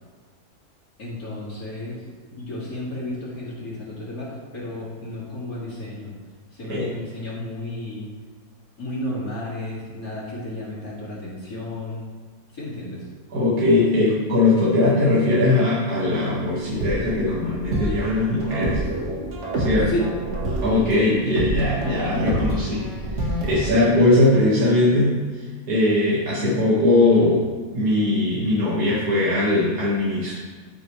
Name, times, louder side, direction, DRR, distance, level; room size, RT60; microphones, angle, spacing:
voice 1, 1.0-2.0 2.3-6.2 6.5-8.1 8.8-12.1 12.5-13.1 19.8-20.1, left 1 dB, 70° left, -9 dB, 2.8 m, -32 dB
voice 2, 13.3-18.8 19.6-19.9 20.6-22.9 23.4-25.2 25.7-27.4 27.7-30.3, left 2 dB, 90° right, -8 dB, 2.3 m, -20 dB
sound 1, 16.3-23.7, right 1 dB, 50° right, 1.9 m, -28 dB
12.5 x 6.5 x 3.3 m, 1.5 s
omnidirectional pair, 1.6 m